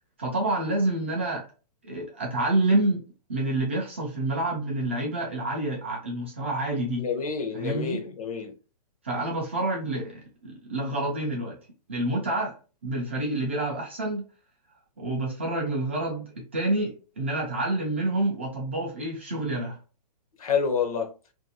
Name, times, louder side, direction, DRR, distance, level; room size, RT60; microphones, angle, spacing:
voice 1, 0.2-1.4 1.8-3.0 3.3-7.1 7.5-8.0 9.0-10.1 10.4-11.6 11.9-12.5 12.8-14.2 15.0-19.8, right 2 dB, 20° right, 0.3 m, -28 dB
voice 2, 7.0-8.5 20.4-21.1, left 6 dB, 60° left, 0.8 m, -28 dB
2.8 x 2.6 x 2.7 m
hypercardioid pair, 175°, 21 cm